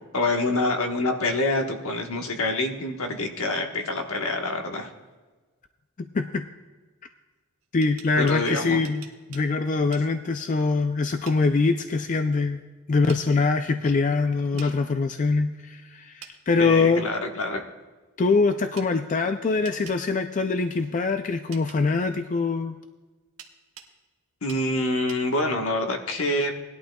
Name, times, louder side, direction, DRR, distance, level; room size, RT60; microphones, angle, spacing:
voice 1, 0.1-4.9 8.2-8.8 14.6-14.7 16.6-17.6 24.4-26.5, left 2 dB, 70° left, 3 dB, 1.3 m, -26 dB
voice 2, 6.0-6.5 7.7-12.6 12.9-17.0 18.2-22.7, left 4 dB, 35° left, 7 dB, 0.4 m, -23 dB
sound 1, 7.6-9.5 9.9-10.1 11.3-11.4 13.1-13.2 14.6-14.7 16.2-16.4 18.8-18.9 19.6-20.0 21.5-21.8 23.4-23.9 24.5-24.6 25.1-25.2, right 8 dB, 85° right, 1.3 m, -45 dB
19.5 x 11.5 x 2.3 m, 1.3 s
head